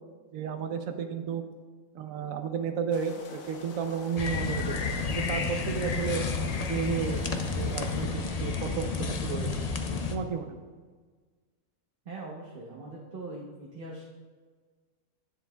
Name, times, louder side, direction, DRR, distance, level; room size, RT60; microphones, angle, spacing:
voice 1, 0.3-1.4 1.9-4.8 5.1-6.2 6.7-9.6 10.1-10.6, right 7 dB, 85° right, 7 dB, 1.1 m, -33 dB
sound 1, 2.9-8.1, left 3 dB, 85° left, 1.3 m, -46 dB
sound 2, 4.2-10.2, left 4 dB, 50° left, 0.4 m, -31 dB
voice 2, 12.0-14.1, right 2 dB, 45° right, -3 dB, 1.1 m, -41 dB
10.0 x 9.4 x 2.3 m, 1.5 s
omnidirectional pair, 1.4 m